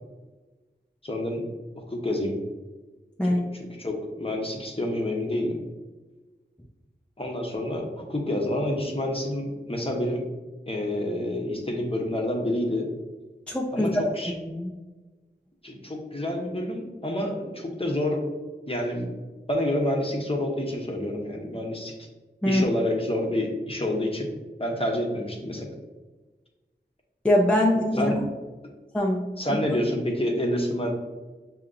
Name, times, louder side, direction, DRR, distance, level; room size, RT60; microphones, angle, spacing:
voice 1, 1.0-1.4 1.8-2.4 3.2-5.6 7.2-10.2 10.7-12.9 13.7-14.3 15.6-18.2 18.7-19.1 19.5-21.9 22.4-24.3 24.6-25.7 28.0-28.2 29.4-30.9, left 1 dB, 30° left, 0 dB, 0.9 m, -28 dB
voice 2, 13.5-13.9 14.4-14.7 22.4-22.6 27.2-28.1 28.9-29.6, left 1 dB, 5° left, -1 dB, 0.5 m, -23 dB
6.4 x 2.8 x 2.5 m, 1.2 s
wide cardioid pair, 50°, 18 cm